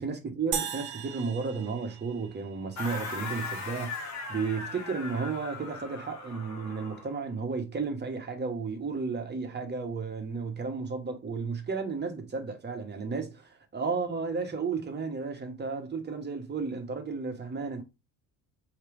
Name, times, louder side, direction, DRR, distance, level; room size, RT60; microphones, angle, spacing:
voice 1, 0.0-13.4 13.7-17.8, right 4 dB, 25° right, 1.1 m, -33 dB
sound 1, 0.5-3.0, right 8 dB, 75° right, 0.9 m, -37 dB
sound 2, 2.8-7.2, left 4 dB, 45° left, 1.6 m, -39 dB
4.4 x 3.0 x 3.4 m
cardioid pair, 115°, 38 cm